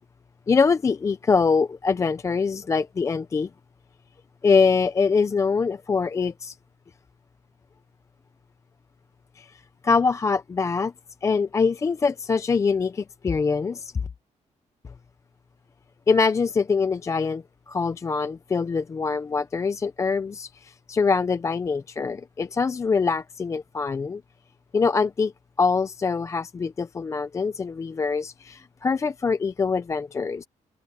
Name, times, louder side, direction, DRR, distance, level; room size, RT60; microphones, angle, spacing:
voice 1, 0.5-3.5 4.4-6.6 9.4-10.9 11.2-13.9 16.1-24.2 24.7-25.3 25.6-30.5, left 5 dB, 25° left, 0.4 m, -24 dB
cardioid pair, 155°, 13 cm